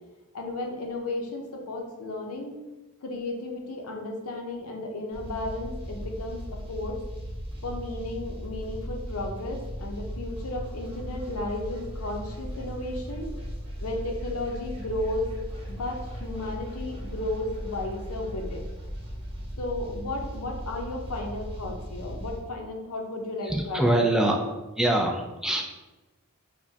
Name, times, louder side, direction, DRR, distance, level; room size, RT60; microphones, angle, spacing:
voice 1, 0.3-2.6 3.0-7.0 7.6-13.3 13.8-15.3 15.7-18.6 19.6-24.1, left 2 dB, 70° left, 1 dB, 0.6 m, -34 dB
sound 1, 5.1-22.4, equal, 25° right, 1.0 m, -37 dB
voice 2, 23.4-24.4 24.8-25.6, right 1 dB, 5° right, 1 dB, 0.3 m, -24 dB
4.7 x 2.2 x 2.7 m, 1.1 s
head